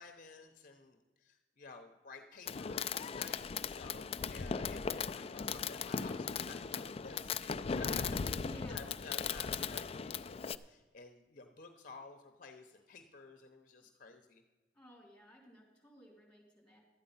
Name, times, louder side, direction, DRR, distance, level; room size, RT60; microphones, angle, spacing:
voice 1, 0.0-14.4, left 4 dB, 50° left, 5 dB, 0.9 m, -53 dB
Fireworks, 2.5-10.6, left 6 dB, 35° left, 0.3 m, -38 dB
voice 2, 8.4-8.8 14.7-16.8, equal, 5° left, -1 dB, 3.6 m, -56 dB
12.5 x 9.0 x 5.6 m, 1.2 s
head